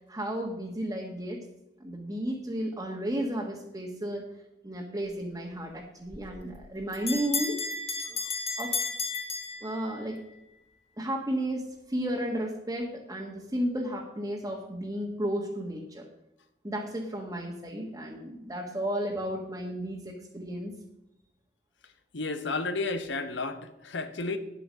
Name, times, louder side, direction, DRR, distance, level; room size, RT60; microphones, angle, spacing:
voice 1, 0.1-1.4 1.8-4.3 4.6-7.6 8.0-8.2 8.6-8.8 9.6-10.2 11.0-16.1 16.6-20.8, right 1 dB, 20° right, -2 dB, 1.5 m, -33 dB
Bell, 6.1-10.2, left 4 dB, 35° left, 1.9 m, -33 dB
voice 2, 22.1-24.4, left 3 dB, 85° left, 10 dB, 1.1 m, -32 dB
9.9 x 8.3 x 6.3 m, 0.90 s
head